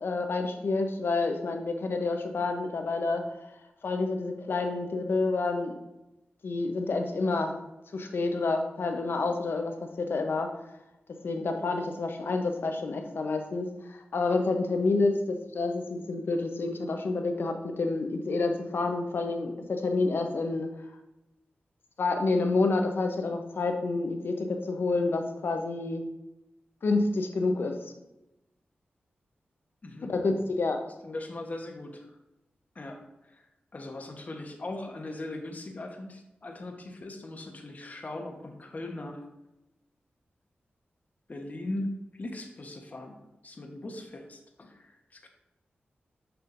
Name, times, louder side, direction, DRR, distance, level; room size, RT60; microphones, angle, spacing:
voice 1, 0.0-3.2 3.8-5.7 6.4-7.5 7.9-10.5 11.2-20.7 22.0-26.0 26.8-27.7 30.1-30.8, left 3 dB, 70° left, 5 dB, 0.8 m, -28 dB
voice 2, 29.8-30.1 31.0-32.2 32.7-39.2 41.3-41.9 42.2-43.2 43.4-45.3, left 2 dB, 45° left, 3 dB, 1.1 m, -39 dB
6.8 x 5.5 x 2.6 m, 0.96 s
cardioid pair, 65°, 4 cm